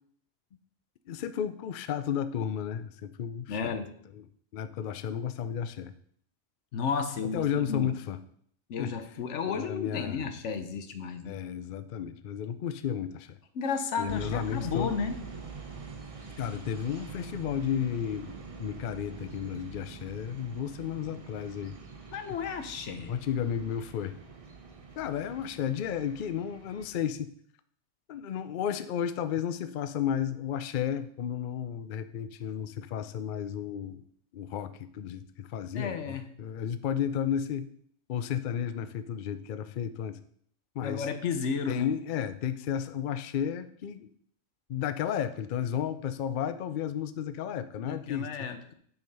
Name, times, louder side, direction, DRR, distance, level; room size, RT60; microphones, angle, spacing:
voice 1, 1.1-3.8 4.1-4.2 4.5-5.9 7.3-8.2 8.8-8.9 9.5-10.3 11.3-13.4 14.0-14.9 16.4-21.8 23.0-24.2 25.0-27.3 28.1-34.0 34.3-37.7 38.1-40.2 40.8-41.1 41.7-44.1 44.7-48.5, left 9 dB, 55° left, 11 dB, 0.6 m, -33 dB
voice 2, 3.5-3.9 6.7-7.9 8.7-11.4 13.5-15.2 22.1-23.1 35.7-36.2 40.8-41.9 47.8-48.7, left 6 dB, 85° left, 9 dB, 1.2 m, -33 dB
sound 1, 14.1-26.9, right 5 dB, 30° right, 0.9 m, -45 dB
8.0 x 4.8 x 5.3 m, 0.62 s
omnidirectional pair, 1.2 m